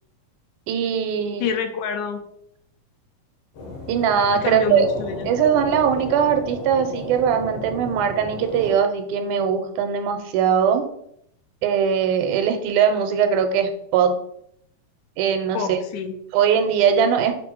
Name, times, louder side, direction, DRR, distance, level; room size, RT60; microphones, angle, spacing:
voice 1, 0.7-1.5 3.9-4.9 5.3-10.8 11.6-14.1 15.2-15.8 16.3-17.3, right 7 dB, 90° right, 7 dB, 2.0 m, -20 dB
voice 2, 1.4-2.2 4.4-5.3 15.5-16.1, left 6 dB, 80° left, 5 dB, 2.0 m, -27 dB
sound 1, 3.5-8.7, left 2 dB, 65° left, 1.7 m, -34 dB
5.8 x 2.0 x 4.4 m, 0.71 s
omnidirectional pair, 3.4 m